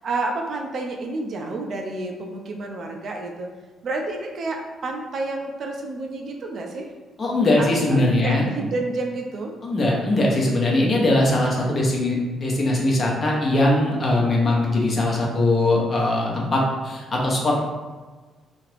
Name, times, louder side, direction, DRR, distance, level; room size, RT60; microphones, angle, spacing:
voice 1, 0.0-3.5 3.8-6.9 7.6-9.5, right 2 dB, 55° right, 2 dB, 0.5 m, -30 dB
voice 2, 7.2-8.5 9.6-17.6, left 1 dB, 40° left, -2 dB, 0.8 m, -21 dB
2.8 x 2.4 x 3.3 m, 1.3 s
cardioid pair, 90°, 0 cm